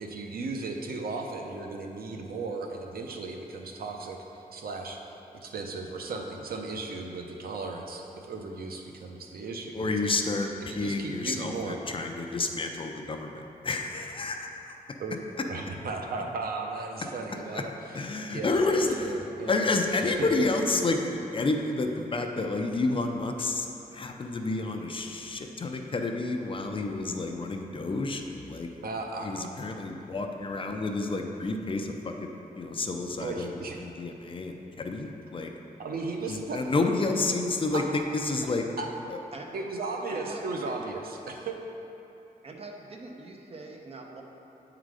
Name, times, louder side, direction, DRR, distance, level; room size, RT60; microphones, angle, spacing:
voice 1, 0.0-10.2 10.7-11.8 15.0-19.6 20.0-20.5 28.8-29.5 33.2-33.8 35.8-36.6 37.7-37.8 38.8-38.9 39.5-41.6, right 3 dB, 85° right, 2 dB, 0.6 m, -36 dB
voice 2, 9.7-14.7 17.5-17.6 17.9-19.2 19.5-28.2 28.5-28.7 29.2-33.5 33.8-35.5 36.3-38.6, left 3 dB, 35° left, 3 dB, 0.4 m, -30 dB
voice 3, 40.1-40.9 42.4-44.2, right 3 dB, 40° right, 1 dB, 0.7 m, -43 dB
8.3 x 3.9 x 4.8 m, 2.9 s
wide cardioid pair, 155°, 15 cm